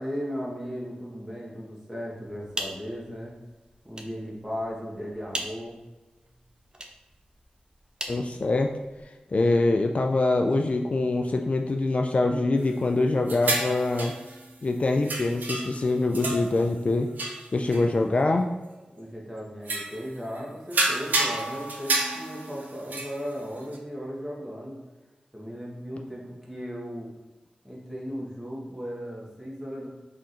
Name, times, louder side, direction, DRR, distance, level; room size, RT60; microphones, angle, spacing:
voice 1, 0.0-3.4 3.8-5.8 18.9-24.8 25.3-27.1 27.6-29.9, equal, 10° right, -4 dB, 1.4 m, -36 dB
sound 1, 2.2-9.1, right 1 dB, 30° right, 0.6 m, -41 dB
voice 2, 8.1-8.7 9.3-14.1 14.6-17.1 17.5-18.5, left 2 dB, 45° left, 3 dB, 0.3 m, -24 dB
sound 2, 13.3-14.5 15.0-15.8 16.1-16.9 17.2-17.8 18.6-18.7 19.7-20.0 20.4-20.5 20.7-23.8, right 2 dB, 80° right, 0.6 m, -30 dB
3.6 x 2.5 x 4.2 m, 1.1 s
cardioid pair, 50°, 3 cm